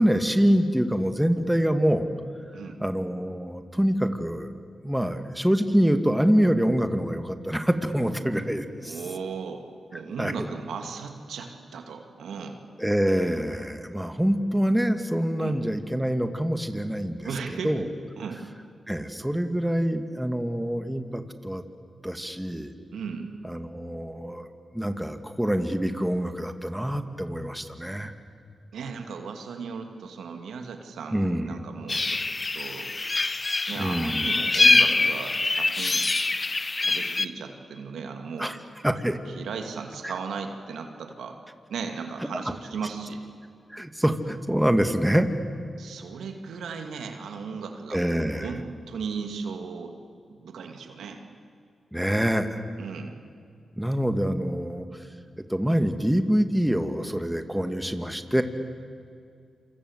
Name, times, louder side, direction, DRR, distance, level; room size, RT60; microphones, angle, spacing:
voice 1, 0.0-2.1 2.8-4.5 4.8-9.0 10.2-10.5 12.8-17.9 18.9-21.6 22.0-22.7 23.4-28.1 31.1-31.5 33.8-34.3 38.4-38.6 38.8-39.2 40.0-40.1 43.7-45.3 47.9-48.5 51.9-52.6 53.8-54.8 55.5-58.4, equal, 5° right, 8 dB, 2.4 m, -25 dB
voice 2, 8.8-9.6 9.9-12.6 15.4-15.6 17.2-17.9 18.2-18.4 22.9-23.3 28.7-32.2 32.5-32.9 33.7-36.1 36.8-38.5 39.3-41.4 41.7-43.2 45.8-48.0 48.4-49.9 50.3-51.2 52.8-53.1, right 5 dB, 85° right, 5 dB, 2.5 m, -36 dB
sound 1, 31.9-37.2, left 3 dB, 40° left, 1.1 m, -24 dB
28.0 x 26.5 x 8.2 m, 2.4 s
supercardioid pair, 45°, 0 cm